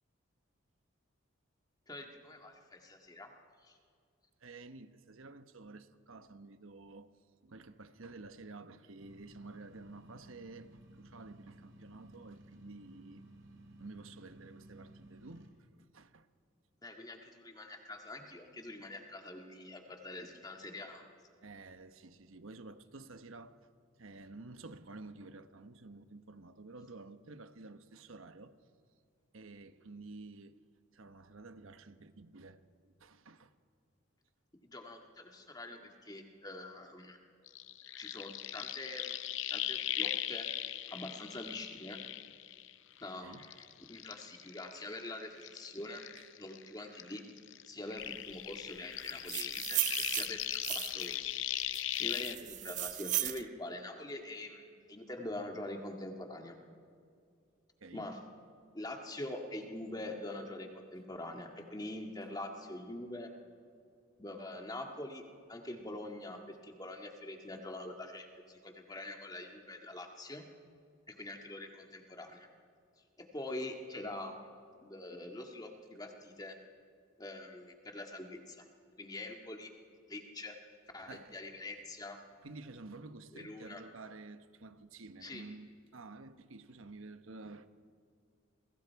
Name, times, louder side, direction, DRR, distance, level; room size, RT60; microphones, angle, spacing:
voice 1, 1.9-3.3 3.6-3.8 16.8-21.1 34.6-37.2 38.0-39.2 39.5-40.5 40.9-42.0 43.0-46.0 46.4-47.2 47.7-50.5 50.7-51.3 51.7-56.6 57.9-58.2 58.7-63.3 64.2-65.2 65.5-70.4 71.1-72.5 73.2-74.5 74.8-76.6 77.2-78.7 79.0-79.7 80.1-80.6 80.9-82.2 83.3-83.8 85.2-85.5, left 1 dB, 20° left, 1.8 m, -44 dB
voice 2, 4.4-7.2 7.4-13.2 13.8-16.3 21.4-23.7 24.0-28.5 29.3-30.6 30.9-33.5 43.2-43.5 46.2-46.3 57.8-58.1 81.1-81.4 82.4-87.7, right 3 dB, 80° right, 1.0 m, -51 dB
sound 1, 9.0-15.5, right 1 dB, 65° right, 2.8 m, -56 dB
sound 2, 37.5-43.0 43.3-46.7 46.9-52.3, left 12 dB, 65° left, 0.7 m, -39 dB
sound 3, 49.1-51.1 51.7-53.4, right 14 dB, 35° right, 0.4 m, -36 dB
28.0 x 22.0 x 4.7 m
head